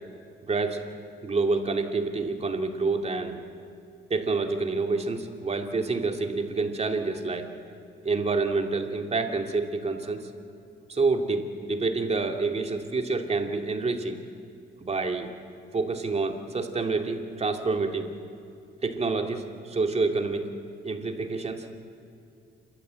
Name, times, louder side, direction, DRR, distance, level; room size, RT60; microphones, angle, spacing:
voice 1, 0.5-0.8 1.2-3.4 4.1-7.5 8.0-10.3 10.9-14.2 14.8-15.3 15.7-18.1 18.8-20.5 20.8-21.7, right 3 dB, 30° right, 5 dB, 2.4 m, -28 dB
28.0 x 13.5 x 8.2 m, 2.7 s
cardioid pair, 90°, 20 cm